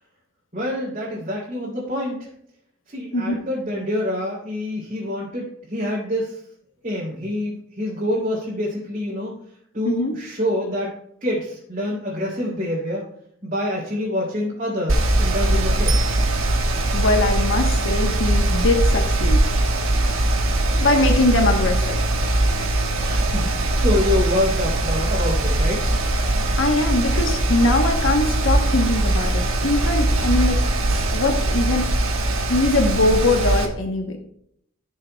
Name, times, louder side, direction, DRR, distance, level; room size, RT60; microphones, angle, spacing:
voice 1, 0.5-2.1 2.9-5.4 5.7-6.4 6.8-9.3 9.7-10.9 11.2-13.0 13.4-16.0 23.0-25.8, left 1 dB, 40° right, -7 dB, 3.1 m, -26 dB
voice 2, 9.8-10.2 16.9-19.4 20.6-22.1 26.3-30.7 31.1-31.9 32.5-34.2, left 2 dB, 65° left, 3 dB, 1.0 m, -22 dB
Mechanical fan, 14.9-33.7, right 1 dB, 80° right, 1.2 m, -21 dB
Bicycle bell, 15.9-17.0 26.1-26.2, right 7 dB, 25° right, 0.4 m, -33 dB
16.5 x 6.6 x 2.2 m, 0.72 s
head